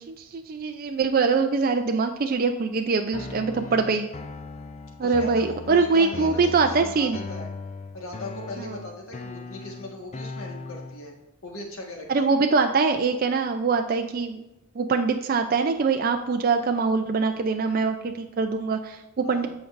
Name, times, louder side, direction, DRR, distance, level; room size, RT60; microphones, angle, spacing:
voice 1, 0.0-4.1 5.0-7.2 12.1-14.4 14.8-19.5, right 4 dB, 40° right, 5 dB, 0.4 m, -23 dB
sound 1, 3.1-11.1, left 3 dB, 30° left, 0.4 m, -39 dB
voice 2, 3.6-3.9 5.0-7.5 7.9-11.1 11.4-12.4 19.2-19.5, left 1 dB, 65° left, 0 dB, 1.5 m, -39 dB
13.5 x 5.2 x 2.5 m, 0.92 s
head